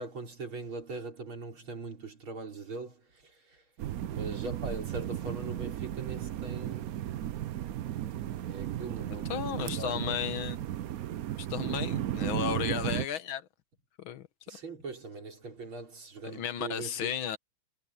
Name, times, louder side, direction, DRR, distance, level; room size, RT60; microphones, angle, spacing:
voice 1, 0.0-3.6 4.0-6.9 8.4-10.2 14.5-17.1, right 3 dB, 90° right, 5.4 m, -41 dB
sound 1, 3.8-13.1, right 12 dB, 65° right, 0.9 m, -35 dB
voice 2, 9.3-10.6 11.4-13.5 14.0-14.3 16.2-17.4, left 9 dB, 75° left, 1.9 m, -34 dB
omnidirectional pair, 2.2 m